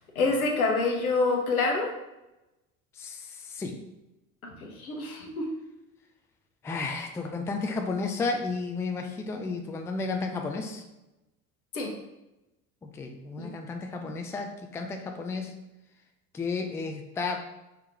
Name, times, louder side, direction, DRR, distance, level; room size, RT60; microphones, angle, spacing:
voice 1, 0.1-1.9 4.6-5.5 11.7-11.9 13.4-13.5, left 3 dB, 75° left, 0 dB, 1.1 m, -26 dB
voice 2, 3.0-3.7 6.6-10.8 12.8-15.5 16.3-17.4, left 4 dB, 5° left, 4 dB, 0.4 m, -32 dB
4.9 x 3.1 x 3.4 m, 0.96 s
figure-of-eight pair, 65°, 43 cm